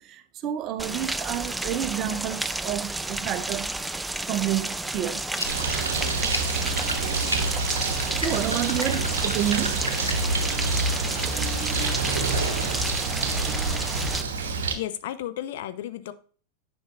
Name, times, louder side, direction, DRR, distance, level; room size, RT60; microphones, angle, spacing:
voice 1, 0.0-3.7 4.3-5.3 7.4-7.5 7.8-7.9 8.2-9.9, right 11 dB, 35° right, 0.6 m, -29 dB
Rain, 0.8-14.2, right 2 dB, 5° right, 0.3 m, -31 dB
sound 1, 5.3-10.3, left 1 dB, 90° left, 0.9 m, -34 dB
Bird, 5.4-14.8, right 3 dB, 60° right, 1.1 m, -27 dB
voice 2, 14.8-16.1, left 12 dB, 55° left, 0.6 m, -33 dB
9.9 x 5.5 x 2.4 m
figure-of-eight pair, 90°, 0 cm